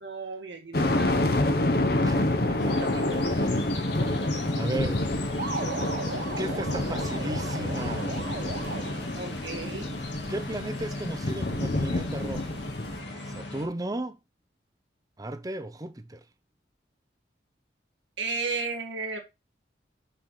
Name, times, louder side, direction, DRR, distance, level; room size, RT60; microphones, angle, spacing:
voice 1, 0.0-1.7 2.6-3.0 9.2-10.0 18.2-19.2, right 4 dB, 85° right, 1.7 m, -35 dB
sound 1, 0.7-13.0, left 1 dB, 55° left, 0.8 m, -28 dB
voice 2, 2.0-5.1 6.4-8.1 10.3-12.6 13.2-14.2 15.2-16.2, right 1 dB, 20° right, 0.5 m, -36 dB
sound 2, 2.6-13.7, left 2 dB, 75° left, 1.8 m, -38 dB
sound 3, 5.4-9.3, right 3 dB, 50° right, 1.0 m, -36 dB
6.0 x 6.0 x 3.1 m
head